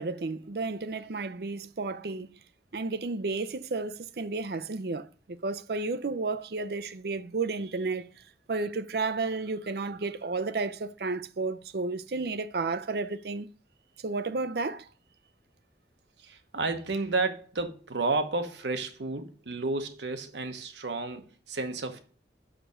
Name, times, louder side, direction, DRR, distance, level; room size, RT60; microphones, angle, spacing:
voice 1, 0.0-2.3 2.7-5.1 5.4-8.1 8.5-13.5 14.0-14.9, right 3 dB, 65° right, 0.5 m, -32 dB
voice 2, 16.2-22.2, right 3 dB, 80° right, 1.1 m, -32 dB
6.1 x 5.1 x 6.5 m
head